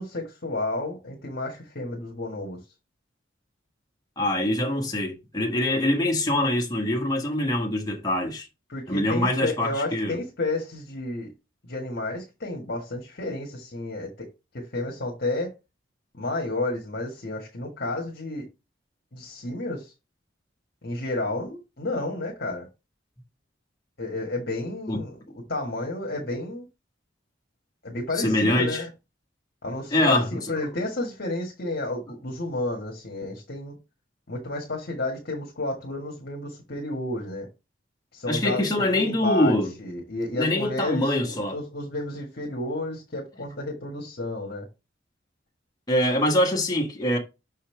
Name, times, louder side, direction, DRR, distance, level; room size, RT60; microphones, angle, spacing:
voice 1, 0.0-2.6 8.7-11.3 11.6-14.3 14.5-15.5 16.2-18.4 19.1-19.9 20.8-22.7 24.0-25.2 25.5-26.7 27.8-28.9 29.6-33.8 34.3-37.5 38.1-38.6 38.9-44.7, left 2 dB, 55° left, 1.6 m, -31 dB
voice 2, 4.2-8.5 8.9-10.2 24.9-25.0 28.1-28.8 29.9-30.6 38.3-39.7 40.3-41.6 45.9-47.2, left 1 dB, 20° left, 1.5 m, -24 dB
6.3 x 5.6 x 3.4 m
head